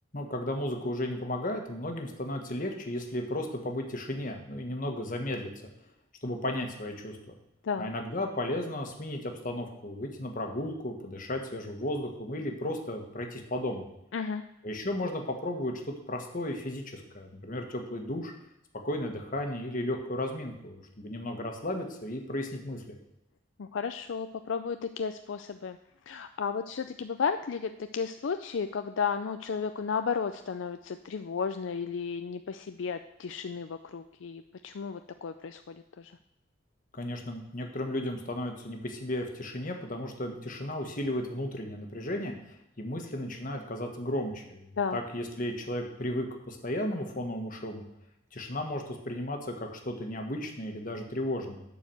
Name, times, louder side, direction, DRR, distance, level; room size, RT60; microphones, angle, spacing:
voice 1, 0.1-5.7 6.2-7.3 7.8-13.8 14.6-18.3 18.8-22.8 36.9-47.8 48.3-51.6, left 1 dB, 45° left, 3 dB, 1.5 m, -34 dB
voice 2, 14.1-14.4 23.6-25.8 26.1-36.1 44.8-45.0, left 6 dB, 75° left, 8 dB, 0.4 m, -33 dB
11.5 x 4.8 x 7.8 m, 0.84 s
head